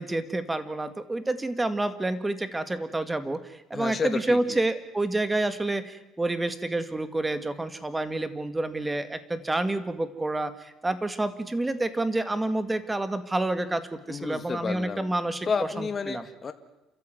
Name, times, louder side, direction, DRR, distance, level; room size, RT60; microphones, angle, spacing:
voice 1, 0.0-13.8 14.1-15.5 15.8-16.2, right 2 dB, 10° right, 12 dB, 1.9 m, -28 dB
voice 2, 3.7-4.6 14.1-15.1 15.5-16.5, left 5 dB, 30° left, 9 dB, 2.0 m, -31 dB
29.0 x 13.5 x 9.3 m, 1.0 s
cardioid pair, 120°, 0 cm